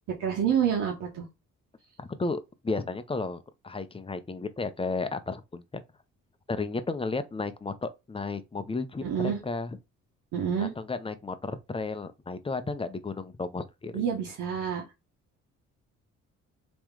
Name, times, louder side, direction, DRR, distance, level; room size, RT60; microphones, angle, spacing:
voice 1, 0.1-1.3 9.0-9.4 10.3-10.7 13.9-14.8, right 8 dB, 85° right, 1.2 m, -28 dB
voice 2, 2.0-5.8 6.5-9.8 10.6-14.0, left 3 dB, 20° left, 0.7 m, -33 dB
3.6 x 3.1 x 4.7 m
cardioid pair, 90°, 30 cm